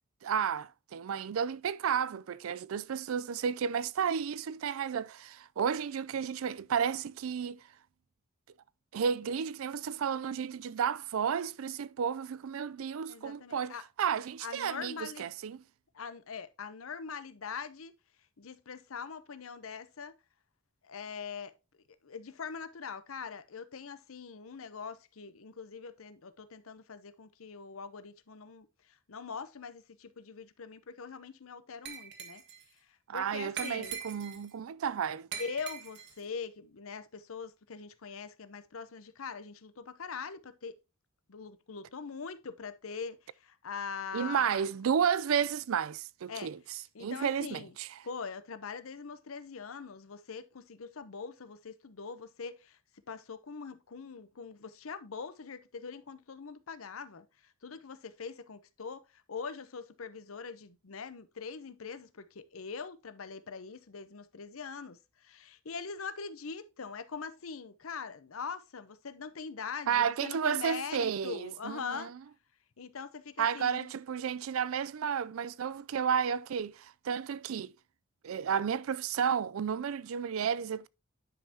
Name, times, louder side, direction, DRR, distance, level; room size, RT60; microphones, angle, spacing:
voice 1, 0.2-7.6 8.9-15.6 33.1-35.3 44.1-47.9 69.9-72.1 73.4-77.7 78.2-80.9, right 7 dB, 90° right, 0.4 m, -32 dB
voice 2, 13.0-13.8 14.4-15.3 15.9-17.9 18.4-20.1 20.8-21.5 22.0-32.4 33.1-34.0 35.4-40.8 41.3-44.6 46.3-46.5 46.9-47.7 48.0-52.8 53.1-59.0 59.3-72.1 72.8-73.9, left 5 dB, 90° left, 0.8 m, -42 dB
Glass, 31.9-32.6 33.6-34.5 35.3-36.2, right 7 dB, 55° right, 1.5 m, -42 dB
10.0 x 5.6 x 2.8 m
head